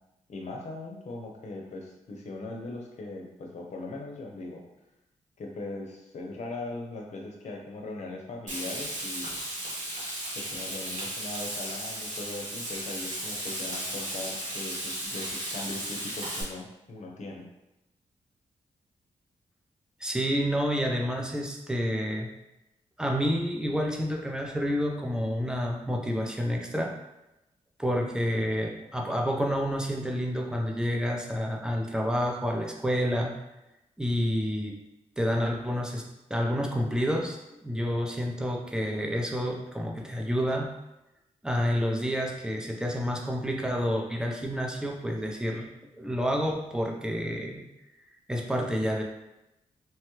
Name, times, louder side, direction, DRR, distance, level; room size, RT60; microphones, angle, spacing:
voice 1, 0.3-4.6 5.4-9.3 10.3-17.4, left 2 dB, 65° left, 0 dB, 0.7 m, -39 dB
Frying (food), 8.5-16.4, right 1 dB, 75° right, 1.1 m, -35 dB
voice 2, 20.0-22.3 23.0-26.9 27.8-33.4 34.0-34.8 35.2-36.0 36.3-40.7 41.4-45.7 46.0-47.6 48.3-49.0, equal, 5° right, 0 dB, 0.6 m, -29 dB
3.1 x 2.2 x 3.1 m, 0.93 s
cardioid pair, 65°, 13 cm